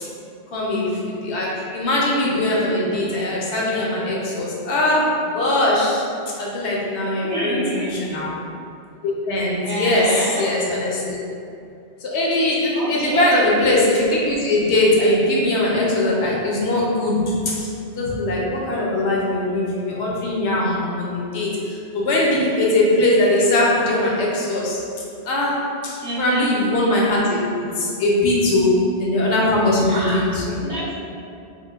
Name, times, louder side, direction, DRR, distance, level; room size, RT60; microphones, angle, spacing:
voice 1, 0.5-8.4 9.0-11.3 12.0-30.6, left 1 dB, 75° left, -4 dB, 0.9 m, -21 dB
voice 2, 7.2-8.0 9.6-10.5 12.7-13.2 26.0-26.5 29.9-30.2 30.6-31.0, right 1 dB, 60° right, -11 dB, 1.2 m, -27 dB
3.7 x 2.0 x 2.3 m, 2.5 s
omnidirectional pair, 1.2 m